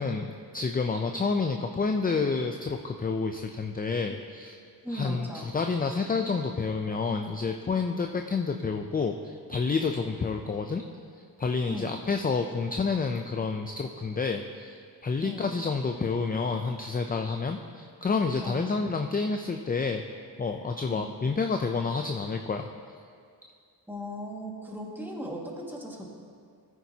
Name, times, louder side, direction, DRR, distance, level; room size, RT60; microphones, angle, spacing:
voice 1, 0.0-4.6 4.9-10.8 11.4-20.0 20.4-22.7, left 4 dB, 20° left, 5 dB, 0.4 m, -29 dB
voice 2, 4.8-5.5 11.7-11.9 15.2-15.5 18.4-18.7 20.9-21.1 23.9-26.1, equal, 5° right, -2 dB, 1.8 m, -37 dB
15.0 x 9.1 x 2.8 m, 2.2 s
cardioid pair, 80°, 41 cm